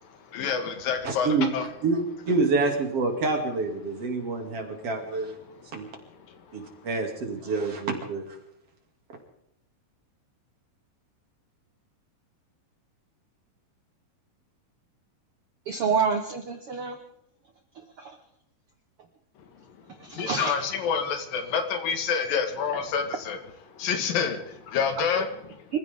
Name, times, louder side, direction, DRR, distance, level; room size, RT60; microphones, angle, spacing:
voice 1, 0.0-1.7 4.2-4.9 5.4-6.9 19.4-23.4 23.7-25.8, left 6 dB, 80° left, 7 dB, 3.4 m, -30 dB
voice 2, 1.1-1.5 1.8-2.0 2.3-5.4 5.7-5.9 6.5-8.4, right 3 dB, 45° right, 3 dB, 3.4 m, -27 dB
voice 3, 15.7-17.0 18.0-18.1 20.0-20.5 25.7-25.8, right 5 dB, 60° right, 5 dB, 1.5 m, -27 dB
27.0 x 15.0 x 3.7 m, 0.77 s
omnidirectional pair, 4.0 m